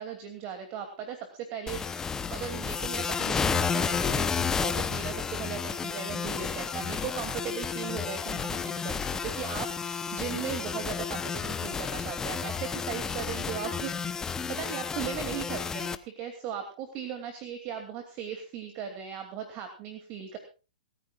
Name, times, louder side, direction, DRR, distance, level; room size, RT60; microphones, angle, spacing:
voice 1, 0.0-14.1 14.5-20.4, right 8 dB, 35° right, 6 dB, 2.7 m, -38 dB
sound 1, 1.7-16.0, left 6 dB, 15° left, 0.8 m, -31 dB
27.0 x 14.5 x 2.5 m, 0.33 s
hypercardioid pair, 135°, 4 cm